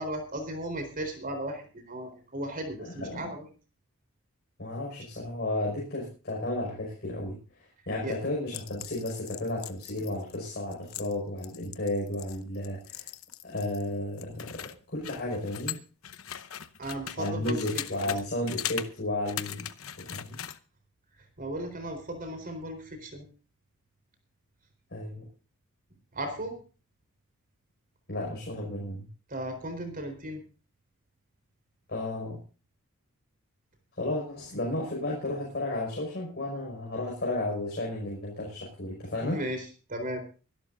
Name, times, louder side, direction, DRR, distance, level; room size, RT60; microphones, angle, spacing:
voice 1, 0.0-3.4 8.0-8.1 16.8-17.6 17.9-18.1 21.4-23.2 26.1-26.5 29.3-30.4 39.2-40.2, right 1 dB, 45° right, 7 dB, 4.2 m, -36 dB
voice 2, 2.8-3.3 4.6-7.4 7.9-13.1 13.4-14.6 14.9-15.8 17.2-19.7 20.1-20.4 24.9-25.2 28.1-29.1 31.9-32.4 34.0-39.4, left 1 dB, 50° left, -2 dB, 5.6 m, -33 dB
sound 1, 8.5-13.9 14.2-18.2 18.5-18.9 19.3-20.6, left 11 dB, 75° left, 0.9 m, -40 dB
24.5 x 12.0 x 2.7 m, 0.36 s
head